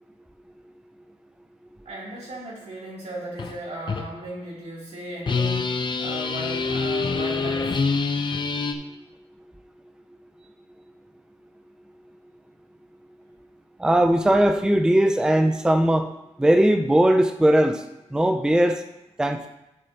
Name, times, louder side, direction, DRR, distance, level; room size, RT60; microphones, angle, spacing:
voice 1, 1.8-7.8, right 1 dB, 75° right, -5 dB, 3.0 m, -36 dB
sound 1, 3.4-3.6 3.9-4.1 5.3-8.7, left 4 dB, 40° left, 0.6 m, -25 dB
voice 2, 13.8-16.1 16.4-17.8 18.1-18.8 19.2-19.5, right 1 dB, 5° right, 5 dB, 0.5 m, -19 dB
11.0 x 7.0 x 2.9 m, 0.92 s
wide cardioid pair, 110°, 12 cm